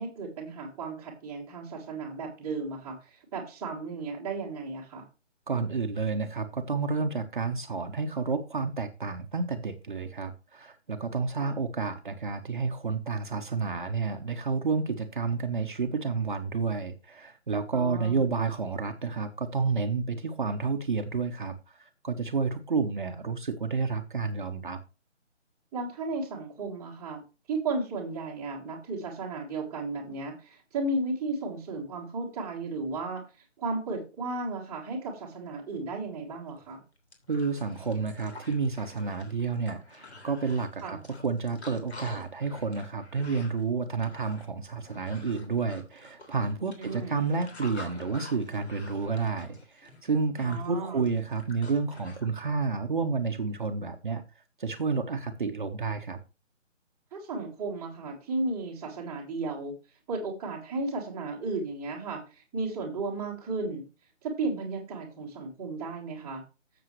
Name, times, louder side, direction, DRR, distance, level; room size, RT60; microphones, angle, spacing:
voice 1, 0.0-5.0 11.4-11.6 17.7-18.2 25.7-27.2 27.5-33.2 33.6-36.8 40.8-41.0 46.8-47.3 50.4-51.0 57.1-59.7 60.1-63.8 64.2-66.4, right 3 dB, 5° right, 1.5 m, -34 dB
voice 2, 5.5-24.8 37.3-54.2 54.6-56.2, right 4 dB, 40° right, 1.1 m, -30 dB
sound 1, 36.6-36.7 37.0-52.3, left 2 dB, 60° left, 3.3 m, -48 dB
13.0 x 7.3 x 3.1 m
figure-of-eight pair, 160°, 37 cm